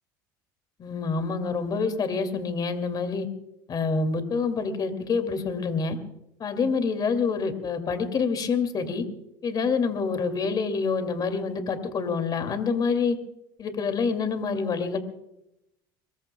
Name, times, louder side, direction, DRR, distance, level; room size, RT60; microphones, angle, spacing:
voice 1, 0.8-3.3 3.7-6.0 6.4-9.0 9.4-13.2 13.6-15.0, left 5 dB, 40° left, 8 dB, 2.5 m, -27 dB
24.5 x 21.5 x 2.3 m, 0.84 s
supercardioid pair, 90°, 11 cm